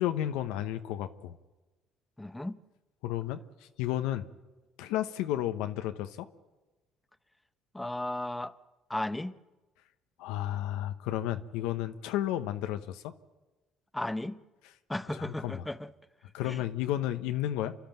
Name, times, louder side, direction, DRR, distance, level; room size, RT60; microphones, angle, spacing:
voice 1, 0.0-1.4 3.0-3.4 3.8-4.2 4.8-6.3 10.2-13.1 15.1-15.6 16.3-17.7, left 12 dB, 85° left, 0.9 m, -32 dB
voice 2, 2.2-2.6 7.7-8.5 8.9-9.3 13.9-14.4 14.9-15.9 16.5-16.6, left 1 dB, 10° left, 0.9 m, -35 dB
28.0 x 12.0 x 9.1 m
supercardioid pair, 75°, 0 cm